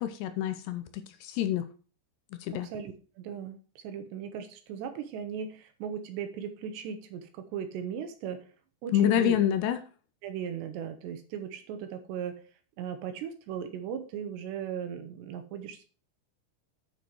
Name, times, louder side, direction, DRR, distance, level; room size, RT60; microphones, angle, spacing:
voice 1, 0.0-1.7 2.3-2.7 8.9-9.8, left 11 dB, 80° left, 10 dB, 2.7 m, -27 dB
voice 2, 2.5-8.4 8.8-9.4 10.2-12.4 12.8-15.9, right 8 dB, 75° right, 8 dB, 3.0 m, -37 dB
9.4 x 6.6 x 4.6 m, 0.37 s
omnidirectional pair, 5.4 m